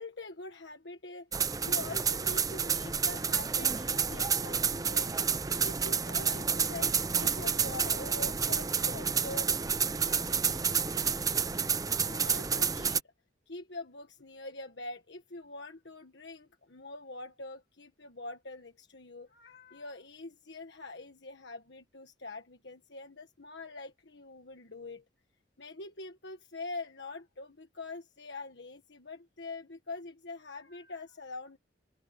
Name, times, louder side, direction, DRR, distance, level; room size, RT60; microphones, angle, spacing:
voice 1, 0.0-5.2 5.5-10.7 11.0-11.2 12.0-13.0 13.5-25.0 25.6-31.6, left 2 dB, 65° left, 1.5 m, -44 dB
sound 1, 1.3-13.0, right 6 dB, 20° right, 0.6 m, -30 dB
open air
head